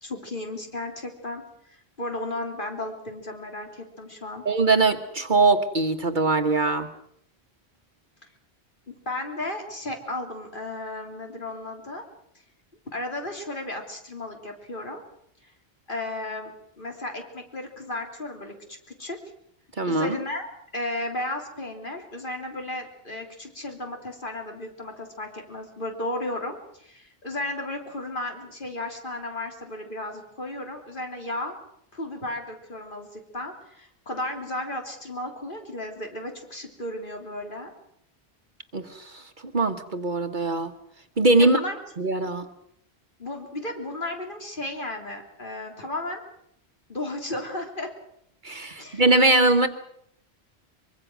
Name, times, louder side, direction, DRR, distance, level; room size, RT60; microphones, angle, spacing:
voice 1, 0.0-4.5 8.9-12.0 12.9-15.0 15.4-15.5 15.9-19.2 19.9-31.6 31.9-37.7 41.4-41.8 43.2-46.2 46.9-47.9 48.8-49.0, left 1 dB, 50° left, 3 dB, 3.7 m, -34 dB
voice 2, 4.4-6.9 19.8-20.2 38.7-39.2 39.5-40.7 41.2-41.6 42.0-42.4 48.4-49.7, right 2 dB, 50° right, 7 dB, 1.4 m, -21 dB
24.0 x 23.5 x 6.2 m, 0.71 s
omnidirectional pair, 1.1 m